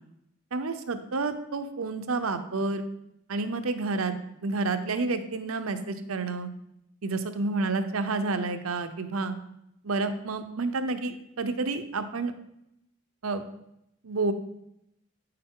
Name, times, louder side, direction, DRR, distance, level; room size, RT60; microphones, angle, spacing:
voice 1, 0.5-2.8 3.3-4.1 4.4-6.5 7.0-9.4 9.8-12.3 13.2-13.4 14.0-14.3, right 3 dB, 80° right, 9 dB, 0.8 m, -29 dB
9.1 x 6.6 x 3.8 m, 0.79 s
head